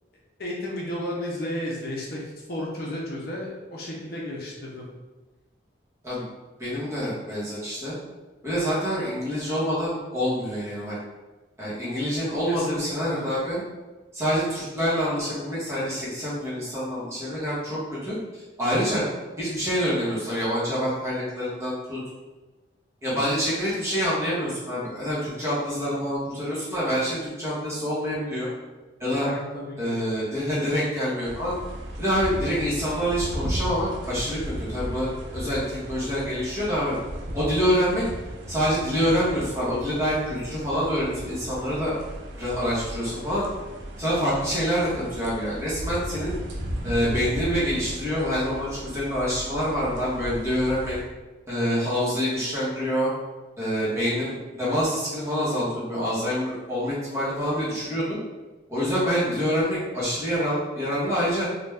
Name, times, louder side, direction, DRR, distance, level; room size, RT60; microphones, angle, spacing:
voice 1, 0.4-2.2 2.5-4.9 12.5-13.2 29.1-30.0, left 1 dB, 55° left, -3 dB, 0.5 m, -33 dB
voice 2, 6.6-7.9 8.4-11.0 11.6-13.6 14.1-18.2 18.6-19.0 19.4-22.0 23.0-28.5 29.0-29.3 29.8-31.5 32.0-37.0 37.3-38.0 38.5-41.9 42.3-43.4 44.0-46.3 46.8-51.0 51.5-53.1 53.6-58.2 58.7-61.5, equal, 15° right, -9 dB, 0.9 m, -26 dB
sound 1, 31.2-51.0, equal, 85° right, 0.5 m, -36 dB
2.5 x 2.2 x 3.2 m, 1.2 s
head